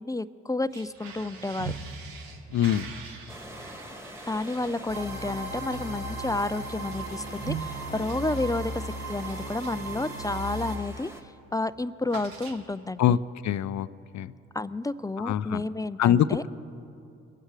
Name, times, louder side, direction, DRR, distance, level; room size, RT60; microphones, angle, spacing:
voice 1, 0.0-1.7 4.3-11.1 11.5-13.2 14.5-16.4, left 2 dB, 10° left, 15 dB, 0.3 m, -31 dB
sound 1, 0.6-10.5 10.9-11.2 11.4-13.0, right 5 dB, 80° right, 1.4 m, -43 dB
voice 2, 2.5-2.9 13.0-13.2 13.4-13.9 14.1-14.3 15.2-15.6 16.0-16.5, left 10 dB, 55° left, 16 dB, 0.6 m, -23 dB
sound 2, 3.3-11.2, equal, 10° right, 1.8 m, -45 dB
sound 3, 4.9-10.8, right 2 dB, 55° right, 2.3 m, -36 dB
23.0 x 9.1 x 4.8 m, 2.6 s
supercardioid pair, 55°, 34 cm